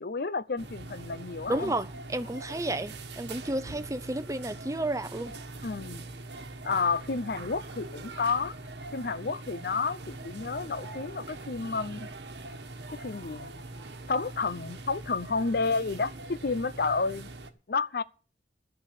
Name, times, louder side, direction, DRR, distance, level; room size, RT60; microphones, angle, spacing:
voice 1, 0.0-1.7 5.6-6.0 6.6-8.6 8.9-12.1 12.9-13.5 14.1-17.3 17.7-18.0, left 4 dB, 55° left, 0.6 m, -30 dB
sound 1, 0.6-17.5, right 2 dB, 70° right, 1.4 m, -42 dB
voice 2, 1.5-5.3, right 1 dB, 15° right, 0.7 m, -32 dB
12.5 x 7.0 x 8.2 m
head